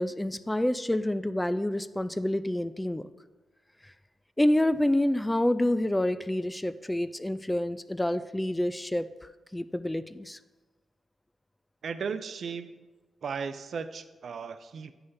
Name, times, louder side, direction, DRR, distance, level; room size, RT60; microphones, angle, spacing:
voice 1, 0.0-3.1 3.8-3.9 4.4-9.1 9.5-10.4, left 1 dB, 10° left, 13 dB, 0.3 m, -28 dB
voice 2, 11.8-12.9 13.2-14.9, right 5 dB, 65° right, 11 dB, 0.4 m, -36 dB
8.0 x 3.3 x 5.4 m, 1.2 s
cardioid pair, 60°, 0 cm